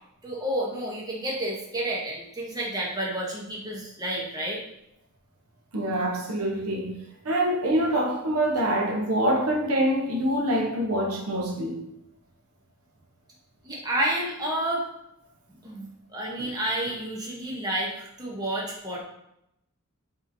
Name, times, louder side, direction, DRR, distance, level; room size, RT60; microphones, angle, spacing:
voice 1, 0.2-4.6 13.6-14.8 15.6-19.0, right 1 dB, 15° right, -4 dB, 0.8 m, -30 dB
voice 2, 5.7-6.9 7.2-11.8, right 1 dB, 75° right, 1 dB, 0.8 m, -25 dB
5.5 x 2.9 x 2.6 m, 0.81 s
head